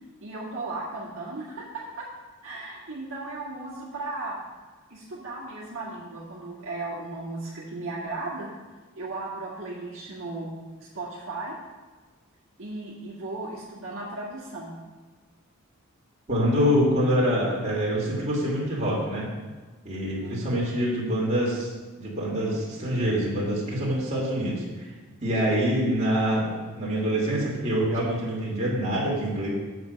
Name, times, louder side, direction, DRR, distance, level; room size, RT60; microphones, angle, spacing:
voice 1, 0.2-2.0 2.4-4.4 4.9-8.5 9.0-10.5 10.8-11.6 12.6-14.7 20.0-20.4, right 2 dB, 60° right, -6 dB, 1.9 m, -36 dB
voice 2, 16.3-19.3 19.8-21.7 22.0-24.9 25.2-29.5, equal, 30° right, -6 dB, 2.7 m, -25 dB
8.1 x 7.7 x 5.2 m, 1.3 s
head